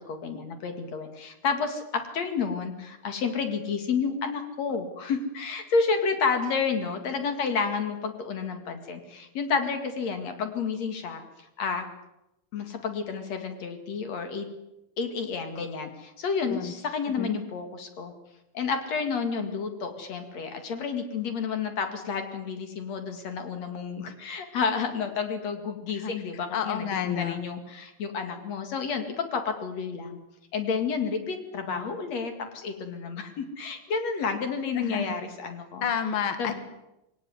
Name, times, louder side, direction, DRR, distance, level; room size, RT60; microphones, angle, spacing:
voice 1, 0.1-11.2 11.6-11.8 12.5-14.5 15.0-18.1 18.5-30.2 30.5-35.8 36.4-36.6, left 5 dB, 45° left, 7 dB, 2.7 m, -30 dB
voice 2, 26.5-27.4 31.7-31.8 34.7-35.1 35.8-36.6, left 7 dB, 85° left, 9 dB, 1.1 m, -30 dB
23.5 x 17.5 x 9.6 m, 0.92 s
omnidirectional pair, 5.5 m